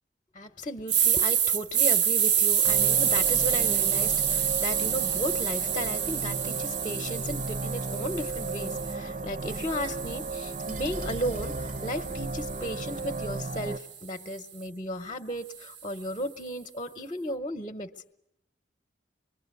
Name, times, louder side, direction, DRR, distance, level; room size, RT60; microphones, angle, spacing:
voice 1, 0.3-17.9, equal, 30° left, 0.9 m, -35 dB
sound 1, 0.9-8.9 9.4-13.6, right 8 dB, 75° right, 1.0 m, -28 dB
sound 2, 2.6-13.8, right 3 dB, 50° right, 0.9 m, -35 dB
25.5 x 23.0 x 8.3 m
head